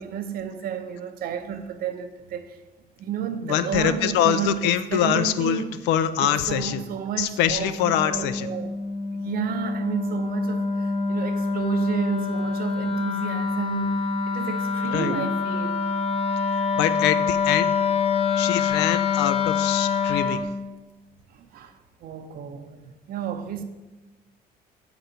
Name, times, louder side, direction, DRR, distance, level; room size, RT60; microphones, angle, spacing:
voice 1, 0.0-2.6 3.0-5.8 6.1-8.8 9.1-15.8 21.3-22.8 23.1-23.6, right 9 dB, 60° right, 0.6 m, -31 dB
voice 2, 3.5-5.6 5.9-6.8 7.2-8.5 14.9-15.1 16.8-17.7 18.4-20.4, left 10 dB, 90° left, 0.4 m, -24 dB
Wind instrument woodwind instrument, 7.6-20.5, left 5 dB, 35° left, 0.7 m, -26 dB
6.8 x 3.9 x 4.4 m
cardioid pair, 110°, 17 cm